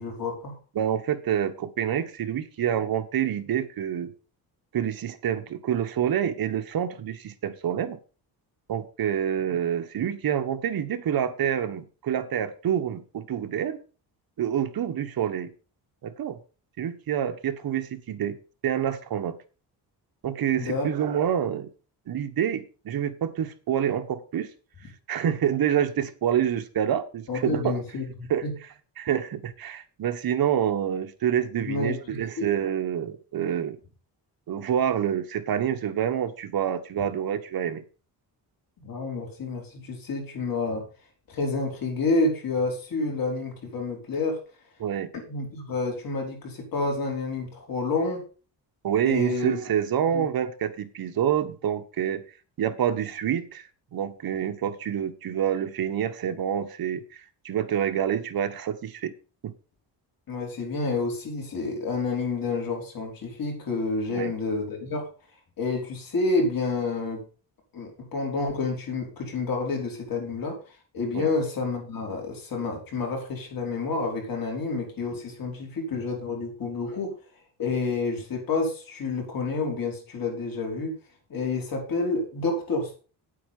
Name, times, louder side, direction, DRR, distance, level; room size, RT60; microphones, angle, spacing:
voice 1, 0.0-0.6 20.5-20.9 27.3-28.5 31.6-31.9 32.4-32.5 38.8-40.9 41.3-44.4 45.1-48.2 49.0-49.6 50.1-50.3 60.3-65.0 65.6-67.2 67.7-70.6 70.9-77.1 77.6-81.0 81.3-83.0, left 3 dB, 55° left, 1 dB, 5.0 m, -29 dB
voice 2, 0.7-4.1 4.7-8.0 8.7-13.8 14.4-15.5 16.0-16.4 16.8-18.4 18.6-19.4 20.2-21.7 22.1-24.5 25.1-27.8 28.3-28.4 29.0-33.8 34.5-37.8 44.8-45.1 48.8-52.2 52.6-53.6 53.9-57.0 57.4-59.1 59.4-59.5 64.1-64.3 71.1-71.3, right 9 dB, 60° right, 7 dB, 1.5 m, -27 dB
9.4 x 8.5 x 5.6 m, 0.36 s
cardioid pair, 135°, 41 cm